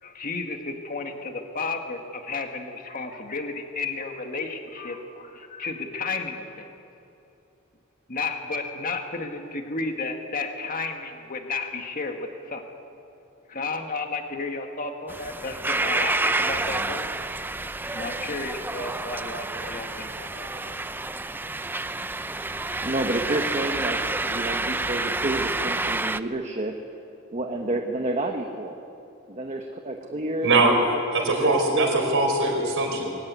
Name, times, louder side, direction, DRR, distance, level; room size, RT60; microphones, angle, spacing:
voice 1, 0.0-6.7 8.1-12.7 13.5-17.1 17.6-20.8, left 3 dB, 40° left, 4 dB, 1.8 m, -33 dB
sound 1, 15.1-26.2, right 2 dB, 10° right, 0.5 m, -29 dB
voice 2, 22.8-26.7 27.3-28.8 29.3-30.5 31.4-31.9, right 2 dB, 35° right, 3 dB, 1.3 m, -29 dB
voice 3, 31.1-33.0, right 2 dB, 65° right, 2 dB, 5.0 m, -22 dB
23.0 x 17.5 x 9.6 m, 2.8 s
head